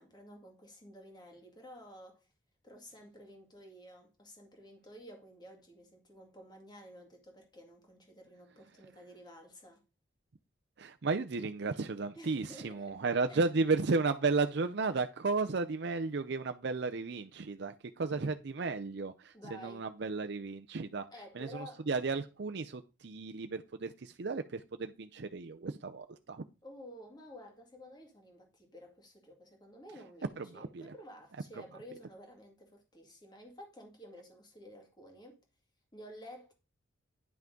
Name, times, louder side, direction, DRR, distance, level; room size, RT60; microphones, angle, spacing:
voice 1, 0.0-2.3 2.6-9.8 12.1-13.0 13.3-13.4 19.3-19.9 21.1-21.9 26.6-35.4 35.9-36.5, equal, 20° left, 2.0 m, -52 dB
voice 2, 10.8-21.1 21.3-26.4 30.4-30.9, right 4 dB, 60° right, 0.5 m, -34 dB
10.5 x 5.8 x 3.8 m
head